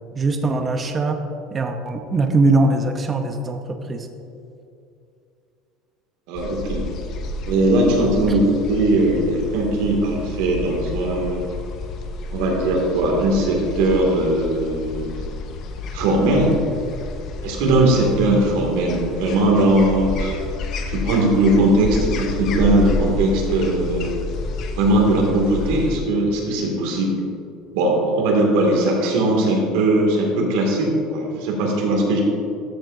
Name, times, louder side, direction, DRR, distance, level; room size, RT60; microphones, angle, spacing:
voice 1, 0.2-1.2 1.5-4.1, right 2 dB, 25° right, 5 dB, 0.8 m, -21 dB
voice 2, 6.3-6.9 7.4-11.4 12.3-15.1 15.9-16.5 17.4-20.4 20.9-24.1 24.8-27.2 27.7-32.2, right 1 dB, 75° right, -1 dB, 2.2 m, -19 dB
sound 1, 6.4-26.0, left 2 dB, 50° left, 0.9 m, -30 dB
13.5 x 7.3 x 2.7 m, 2.6 s
supercardioid pair, 125°, 0 cm